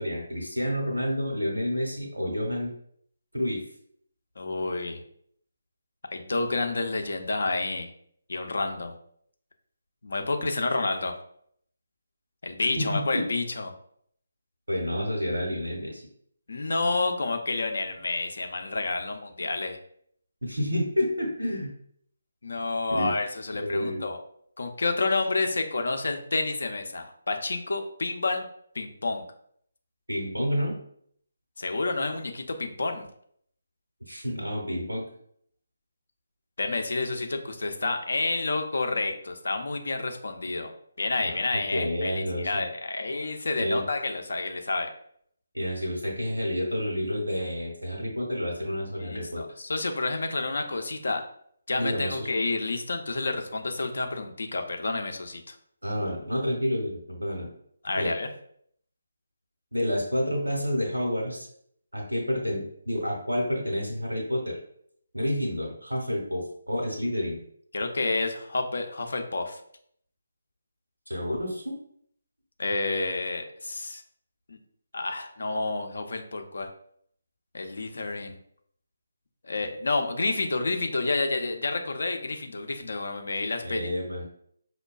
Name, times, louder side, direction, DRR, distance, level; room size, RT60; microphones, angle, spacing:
voice 1, 0.0-2.7 3.3-3.6 12.7-13.2 14.7-16.0 20.4-21.7 22.9-23.1 23.5-24.1 30.1-30.8 34.0-35.0 41.2-41.3 41.7-42.6 43.6-43.8 45.5-49.4 51.8-52.3 55.8-57.5 58.0-58.1 59.7-61.5 61.9-64.6 65.1-67.4 71.1-71.8 83.6-84.2, equal, 90° right, 0 dB, 0.9 m, -29 dB
voice 2, 4.4-5.0 6.1-7.9 8.3-8.9 10.0-11.1 12.4-13.7 16.5-19.8 22.4-24.2 24.6-28.4 28.7-29.2 31.6-33.1 36.6-40.7 41.0-44.9 49.0-51.3 51.7-55.6 57.8-58.3 67.7-69.6 72.6-74.0 74.5-74.6 74.9-76.7 77.5-78.4 79.4-83.9, left 3 dB, 65° left, 5 dB, 0.5 m, -29 dB
5.2 x 2.2 x 2.3 m, 0.65 s
figure-of-eight pair, 150°, 0 cm